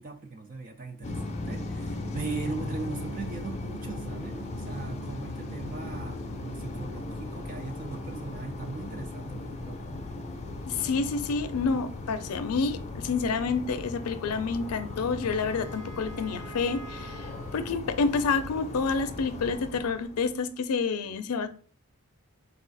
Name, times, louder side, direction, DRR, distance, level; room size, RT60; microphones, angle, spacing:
voice 1, 0.0-9.8, right 3 dB, 40° right, 0.4 m, -39 dB
sound 1, 1.0-20.5, left 2 dB, 30° left, 0.5 m, -38 dB
voice 2, 10.7-21.5, left 4 dB, 85° left, 0.4 m, -29 dB
Wind instrument woodwind instrument, 14.5-17.7, right 2 dB, 75° right, 0.9 m, -48 dB
4.1 x 2.4 x 3.9 m
head